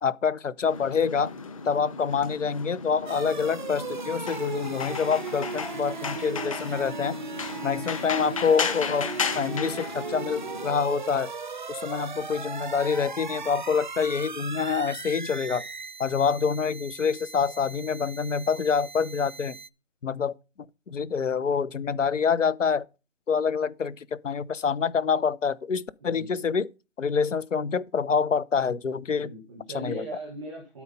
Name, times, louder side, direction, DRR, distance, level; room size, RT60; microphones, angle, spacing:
voice 1, 0.0-1.3 1.6-7.2 7.6-9.1 9.3-11.3 11.7-15.6 16.0-19.6 20.0-20.3 20.9-22.8 23.3-26.7 27.0-29.3 29.7-30.0, left 6 dB, 90° left, 1.0 m, -26 dB
sound 1, 0.6-10.7, left 5 dB, 30° left, 1.2 m, -35 dB
sound 2, 3.1-19.7, right 5 dB, 40° right, 0.4 m, -38 dB
voice 2, 26.0-26.4 29.1-30.8, right 1 dB, ahead, 0.6 m, -39 dB
12.5 x 4.7 x 5.4 m
hypercardioid pair, 170°, 36 cm